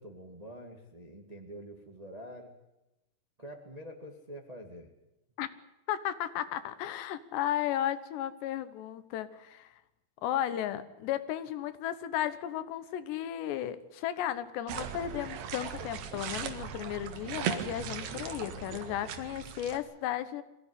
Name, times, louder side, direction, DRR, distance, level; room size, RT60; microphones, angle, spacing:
voice 1, 0.0-2.5 3.4-4.9, equal, 25° right, 4 dB, 0.8 m, -46 dB
voice 2, 5.9-9.7 10.2-20.4, left 11 dB, 80° left, 13 dB, 3.3 m, -34 dB
sound 1, 14.7-19.8, right 8 dB, 70° right, 3.6 m, -38 dB
23.0 x 16.5 x 9.9 m, 0.95 s
omnidirectional pair, 4.9 m